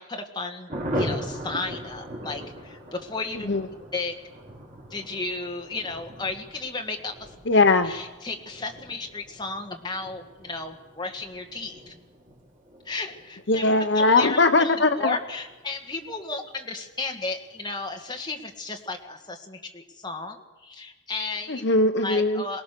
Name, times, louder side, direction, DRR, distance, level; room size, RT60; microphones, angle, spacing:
voice 1, 0.0-3.5 3.9-4.1 4.9-7.3 7.8-11.9 12.8-13.6 13.9-21.6 22.0-22.6, left 3 dB, 20° left, 2 dB, 1.8 m, -34 dB
Thunder, 0.7-16.8 17.1-17.2 17.5-17.6 17.9-18.3, equal, 40° right, 4.6 m, -39 dB
voice 2, 7.5-7.9 13.5-15.2 21.5-22.4, left 3 dB, 60° left, 8 dB, 0.8 m, -20 dB
23.0 x 18.5 x 6.8 m, 1.2 s
head